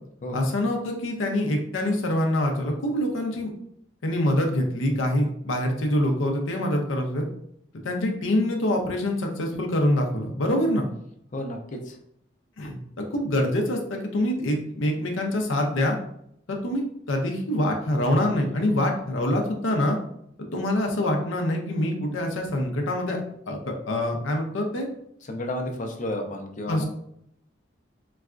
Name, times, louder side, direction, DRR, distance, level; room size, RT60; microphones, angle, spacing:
voice 1, 0.3-3.5 4.0-7.2 7.8-10.9 12.6-16.0 16.6-16.8 17.1-20.0 20.5-23.2 23.5-24.9 26.7-26.8, left 1 dB, 85° left, 2 dB, 0.6 m, -25 dB
voice 2, 11.3-12.0 25.3-26.8, left 1 dB, 40° left, 3 dB, 0.5 m, -32 dB
4.0 x 2.3 x 2.4 m, 0.73 s
head